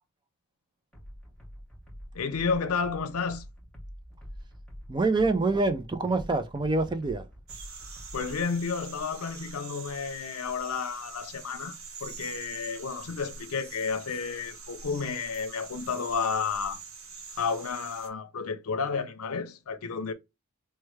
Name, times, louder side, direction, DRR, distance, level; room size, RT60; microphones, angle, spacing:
sound 1, 0.9-8.4, equal, 5° left, 0.8 m, -46 dB
voice 1, 2.1-3.5 8.1-16.8 17.4-20.1, left 5 dB, 80° left, 0.6 m, -31 dB
voice 2, 4.9-7.3, right 3 dB, 20° right, 0.4 m, -26 dB
sound 2, 7.5-18.1, right 5 dB, 65° right, 1.0 m, -45 dB
4.5 x 2.2 x 3.1 m
head